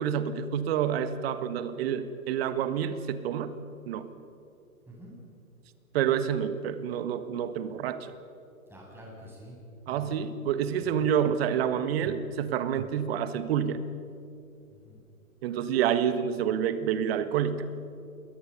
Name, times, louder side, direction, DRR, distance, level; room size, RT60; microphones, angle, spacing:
voice 1, 0.0-3.5 3.9-4.1 5.9-8.1 9.9-13.9 15.4-17.8, right 8 dB, 45° right, 11 dB, 1.6 m, -28 dB
voice 2, 4.9-5.2 8.7-9.6 9.9-10.2 14.7-15.0, equal, 5° right, -4 dB, 7.6 m, -47 dB
28.0 x 22.0 x 5.5 m, 2.8 s
figure-of-eight pair, 115°, 43 cm